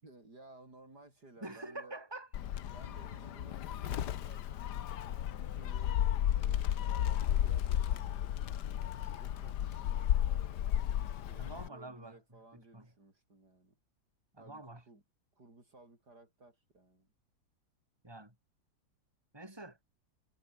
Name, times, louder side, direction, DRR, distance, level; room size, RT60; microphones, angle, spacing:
voice 1, 0.0-2.0 2.7-8.6 9.2-10.4 11.3-13.8 14.4-15.0 15.4-17.1, right 2 dB, 80° right, 7.5 m, -58 dB
voice 2, 1.4-2.3 11.4-12.2 12.5-12.9 14.3-14.8 18.0-18.3 19.3-19.8, right 2 dB, 15° right, 4.5 m, -46 dB
Gull seagull, 2.3-11.7, left 11 dB, 85° left, 1.6 m, -33 dB
omnidirectional pair, 1.7 m